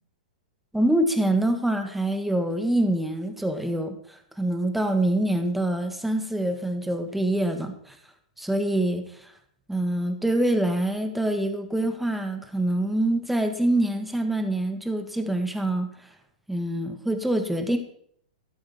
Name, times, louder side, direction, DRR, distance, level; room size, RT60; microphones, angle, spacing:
voice 1, 0.7-8.0 8.4-9.3 9.7-15.9 16.5-17.8, right 1 dB, 5° right, 6 dB, 1.7 m, -25 dB
13.0 x 11.5 x 4.3 m, 0.66 s
hypercardioid pair, 115°, 4 cm